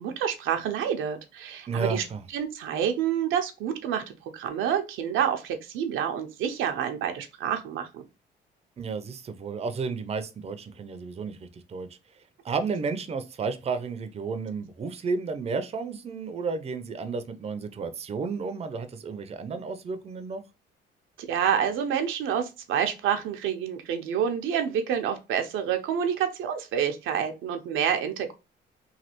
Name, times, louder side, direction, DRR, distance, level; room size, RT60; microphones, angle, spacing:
voice 1, 0.0-2.0 2.3-4.0 4.3-8.0 21.2-28.3, right 8 dB, 85° right, 0.6 m, -28 dB
voice 2, 1.7-2.2 8.8-11.9 12.4-20.4, right 4 dB, 30° right, 0.5 m, -32 dB
3.2 x 2.3 x 2.8 m
cardioid pair, 90°, 20 cm